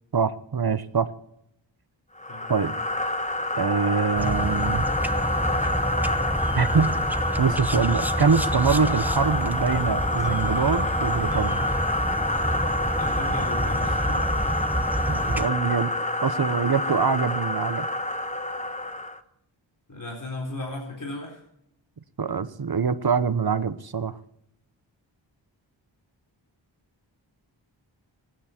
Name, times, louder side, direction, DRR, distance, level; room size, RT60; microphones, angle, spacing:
voice 1, 0.1-1.1 2.5-2.7 3.6-4.9 6.5-6.9 7.4-11.7 15.1-15.9 16.2-17.9 22.2-24.2, right 5 dB, 50° right, 13 dB, 1.1 m, -24 dB
sound 1, 2.2-19.2, left 1 dB, 15° left, 1.2 m, -27 dB
voice 2, 2.3-2.8 13.0-14.5 19.9-21.4, left 2 dB, 40° left, -1 dB, 4.1 m, -36 dB
sound 2, 4.2-15.5, equal, 5° right, 0.9 m, -29 dB
25.5 x 9.6 x 4.5 m, 0.76 s
wide cardioid pair, 60°, 46 cm